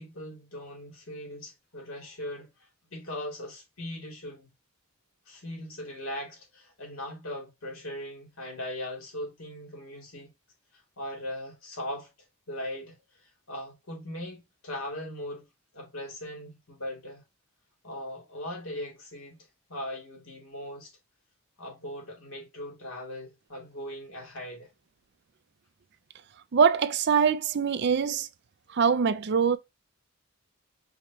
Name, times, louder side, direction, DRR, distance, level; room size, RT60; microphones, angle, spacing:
voice 1, 0.0-2.5 2.9-4.5 5.3-10.3 10.7-12.1 12.5-13.0 13.5-15.5 15.7-17.2 17.8-19.4 19.7-20.9 21.6-24.7, left 1 dB, 75° left, 2.5 m, -39 dB
voice 2, 26.5-28.3 28.7-29.6, right 6 dB, 50° right, 0.4 m, -23 dB
5.0 x 3.0 x 2.7 m
head